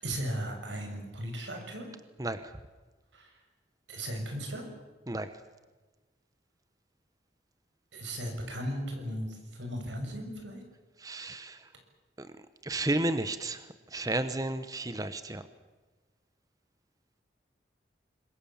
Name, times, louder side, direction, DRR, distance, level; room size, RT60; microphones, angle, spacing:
voice 1, 0.0-1.9 3.1-3.3 3.9-4.7 7.9-10.6, equal, 90° right, 4 dB, 6.6 m, -36 dB
voice 2, 2.2-2.6 5.1-5.3 11.0-11.7 12.2-12.3 12.6-15.4, right 2 dB, 20° right, 11 dB, 0.9 m, -33 dB
27.0 x 22.5 x 7.3 m, 1.3 s
head